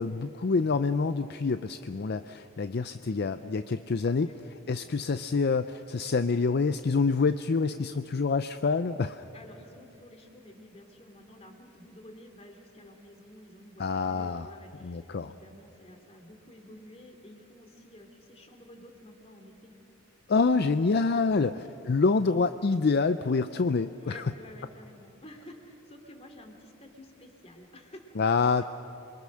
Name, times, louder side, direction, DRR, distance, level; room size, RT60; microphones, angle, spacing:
voice 1, 0.0-4.3 4.7-9.2 13.8-14.5 14.8-15.3 20.3-21.5 21.9-24.2 28.2-28.6, left 4 dB, 55° left, 11 dB, 0.5 m, -26 dB
voice 2, 9.3-19.7 21.5-21.7 24.0-28.2, left 1 dB, 30° left, 4 dB, 2.8 m, -51 dB
27.5 x 22.5 x 6.4 m, 2.9 s
head